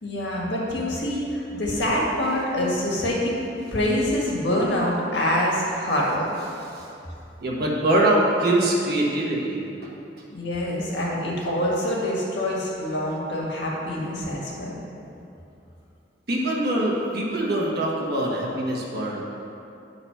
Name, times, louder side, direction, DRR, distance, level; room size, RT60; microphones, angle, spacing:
voice 1, 0.0-3.3 3.7-6.3 10.3-14.8, left 1 dB, 65° left, -4 dB, 1.7 m, -25 dB
voice 2, 7.4-9.9 16.3-19.2, right 1 dB, 55° right, -4 dB, 1.4 m, -23 dB
8.7 x 4.0 x 5.7 m, 2.7 s
head